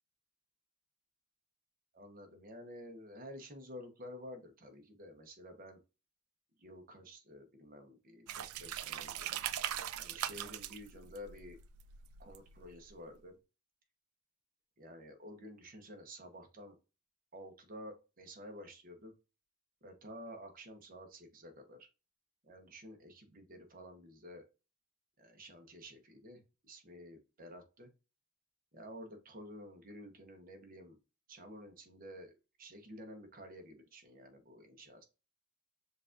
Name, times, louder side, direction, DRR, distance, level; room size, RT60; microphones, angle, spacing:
voice 1, 1.9-5.8 6.6-9.3 10.0-11.6 12.2-13.3 14.8-16.8 17.3-19.1 19.8-21.9 22.4-24.4 25.2-27.9 28.7-31.0 31.3-32.3 32.6-35.0, equal, 40° right, 5 dB, 0.9 m, -51 dB
sound 1, 8.3-12.9, right 11 dB, 80° right, 0.4 m, -41 dB
6.6 x 2.5 x 2.4 m, 0.30 s
head